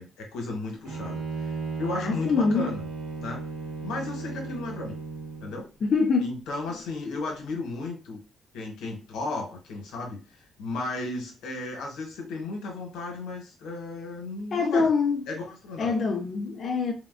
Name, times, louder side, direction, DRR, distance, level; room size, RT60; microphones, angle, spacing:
voice 1, 0.0-2.9 3.2-3.4 3.8-5.0 5.4-5.7 6.2-8.2 8.5-14.9 15.3-16.0, left 2 dB, 90° left, 0.9 m, -34 dB
Bowed string instrument, 0.8-5.6, right 4 dB, 85° right, 1.5 m, -35 dB
voice 2, 1.9-2.7 5.8-6.3 14.5-15.2 15.8-16.9, left 4 dB, 50° left, 0.4 m, -24 dB
3.4 x 2.1 x 2.4 m
cardioid pair, 90°, 0 cm